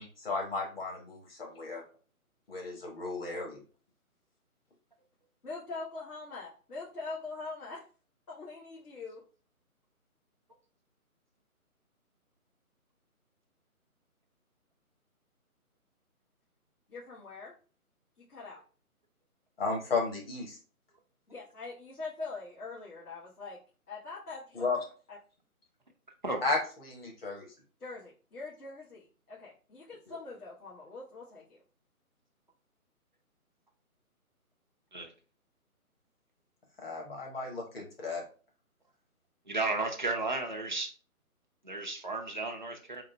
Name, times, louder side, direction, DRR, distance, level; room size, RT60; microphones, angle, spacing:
voice 1, 0.0-1.8 2.5-3.6 19.6-20.6 24.5-24.8 26.4-26.6 26.8-27.5 30.1-30.2 36.8-38.2, left 3 dB, 40° left, 1 dB, 1.3 m, -34 dB
voice 2, 5.4-7.8 8.3-9.2 16.9-17.5 18.3-18.6 21.3-23.6 23.9-24.7 25.1-25.2 27.8-31.6, left 3 dB, 80° left, -7 dB, 1.6 m, -43 dB
voice 3, 39.5-40.9 41.6-43.0, right 3 dB, 35° right, 2 dB, 0.4 m, -33 dB
3.8 x 3.2 x 3.2 m, 0.38 s
figure-of-eight pair, 150°, 44 cm